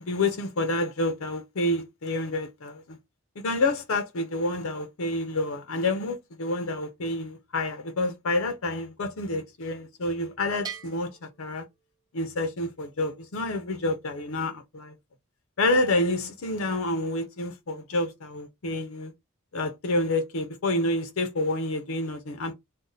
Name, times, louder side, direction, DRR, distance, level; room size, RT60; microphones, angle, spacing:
voice 1, 0.1-3.0 3.4-11.6 12.1-14.9 15.6-19.1 19.5-22.5, left 2 dB, 80° left, 0.6 m, -28 dB
Bell, 10.6-12.4, right 7 dB, 20° right, 0.4 m, -43 dB
2.6 x 2.1 x 3.8 m
head